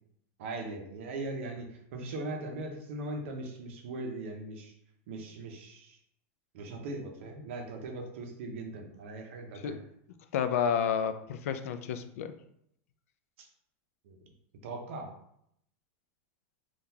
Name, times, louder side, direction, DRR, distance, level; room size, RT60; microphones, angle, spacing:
voice 1, 0.4-4.7 5.1-6.0 6.5-9.8 13.4-13.5 14.0-14.2 14.6-15.1, right 2 dB, 60° right, 3 dB, 0.7 m, -39 dB
voice 2, 10.3-12.3, left 7 dB, 90° left, 10 dB, 0.3 m, -30 dB
3.7 x 2.3 x 2.8 m, 0.73 s
supercardioid pair, 180°, 8 cm